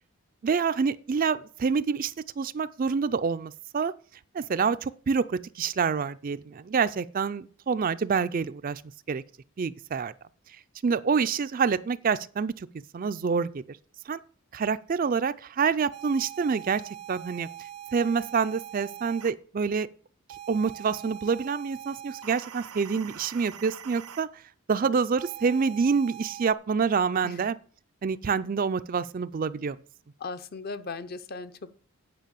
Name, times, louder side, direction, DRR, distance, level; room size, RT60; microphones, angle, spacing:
voice 1, 0.4-3.9 4.3-8.8 9.1-9.2 9.6-10.1 10.8-12.7 12.9-13.5 14.1-14.2 14.5-16.8 17.1-17.5 17.9-19.9 20.5-24.3 24.7-27.6 28.0-29.8, right 5 dB, 40° right, 0.3 m, -27 dB
sound 1, 15.9-19.3 20.3-24.2 25.2-26.5, right 10 dB, 85° right, 0.7 m, -43 dB
voice 2, 30.2-31.7, left 4 dB, 45° left, 0.6 m, -37 dB
9.1 x 5.6 x 6.8 m
head